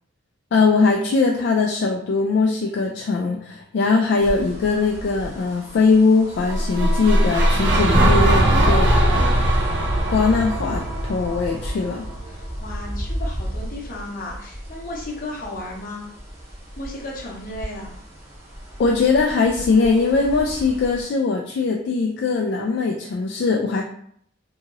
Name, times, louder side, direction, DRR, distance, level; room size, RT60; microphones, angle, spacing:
voice 1, 0.5-8.9 10.1-12.0 18.8-23.8, left 4 dB, 60° left, 0 dB, 0.3 m, -20 dB
sound 1, 4.2-21.0, equal, 15° right, 0.7 m, -36 dB
sound 2, 6.4-12.6, right 1 dB, 60° right, 0.5 m, -19 dB
voice 2, 8.4-9.3 12.3-16.1 16.8-18.0, left 2 dB, 45° left, -2 dB, 0.7 m, -33 dB
2.8 x 2.8 x 2.5 m, 0.66 s
head